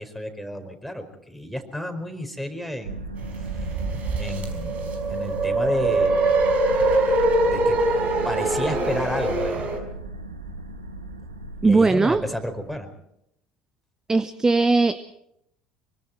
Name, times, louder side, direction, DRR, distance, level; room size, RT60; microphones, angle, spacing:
voice 1, 0.0-3.0 4.2-6.4 7.5-7.8 8.2-9.7 11.6-12.9, equal, ahead, 6 dB, 4.8 m, -31 dB
sound 1, 2.8-12.8, right 2 dB, 90° right, 1.8 m, -35 dB
sound 2, 3.2-9.8, right 2 dB, 45° right, 5.2 m, -23 dB
voice 2, 11.6-12.2 14.1-15.0, right 3 dB, 20° right, 14 dB, 0.9 m, -19 dB
25.0 x 24.5 x 4.5 m, 0.77 s
figure-of-eight pair, 65°, 3 cm